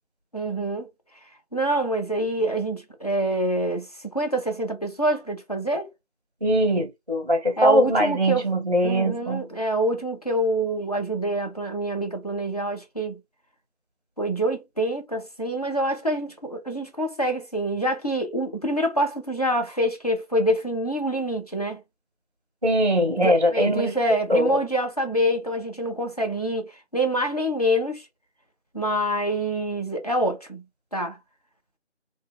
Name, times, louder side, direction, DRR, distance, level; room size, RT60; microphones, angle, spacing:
voice 1, 0.3-0.9 1.5-5.9 7.6-8.4 8.8-13.2 14.2-21.8 23.2-28.1 28.7-30.6 30.9-31.2, right 1 dB, 35° left, 0.6 m, -26 dB
voice 2, 6.4-9.5 22.6-24.0 24.3-24.6, equal, 35° right, 0.7 m, -21 dB
2.8 x 2.7 x 3.3 m
figure-of-eight pair, 170°, 35 cm